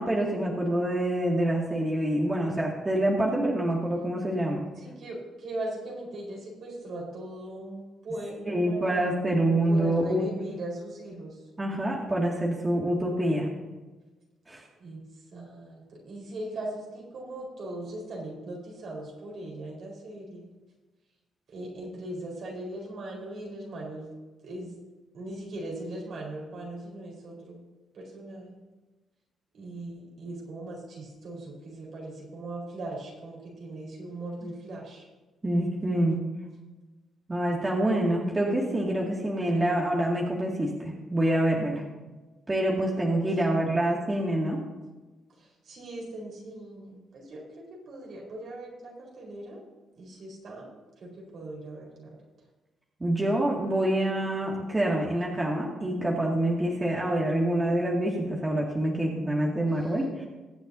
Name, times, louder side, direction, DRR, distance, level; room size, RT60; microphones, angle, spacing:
voice 1, 0.0-4.6 8.5-10.3 11.6-13.5 14.5-14.6 35.4-36.2 37.3-41.9 42.5-44.6 53.0-60.2, right 1 dB, 20° right, -3 dB, 2.2 m, -26 dB
voice 2, 4.8-9.1 9.7-11.4 14.8-15.0 15.3-20.5 21.5-24.1 24.4-24.7 25.1-27.6 27.9-28.6 29.5-35.1 43.5-43.7 45.3-49.6 50.0-50.7 51.0-52.2 59.8-60.3, right 1 dB, 60° right, -2 dB, 4.5 m, -39 dB
22.0 x 8.1 x 2.8 m, 1.2 s
cardioid pair, 90°, 0 cm